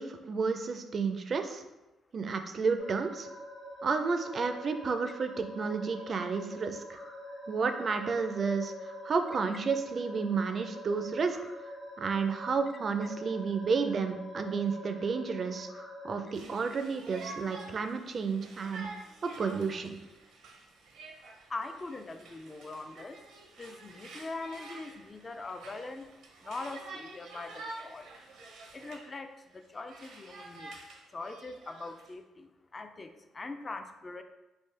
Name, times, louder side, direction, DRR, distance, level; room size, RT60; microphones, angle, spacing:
voice 1, 0.0-1.6 2.1-3.3 3.8-7.0 7.5-11.4 12.0-18.9 19.2-20.0, right 5 dB, 45° right, 7 dB, 0.4 m, -31 dB
sound 1, 2.8-16.2, equal, 45° left, 1.1 m, -45 dB
Conversation, 16.3-29.1 29.5-32.1, right 3 dB, 85° right, 0.6 m, -49 dB
voice 2, 21.5-23.2 23.6-26.1 26.4-28.1 28.7-30.8 31.1-34.2, left 3 dB, 30° left, 7 dB, 0.3 m, -42 dB
3.6 x 2.5 x 3.2 m, 0.97 s
cardioid pair, 90°, 0 cm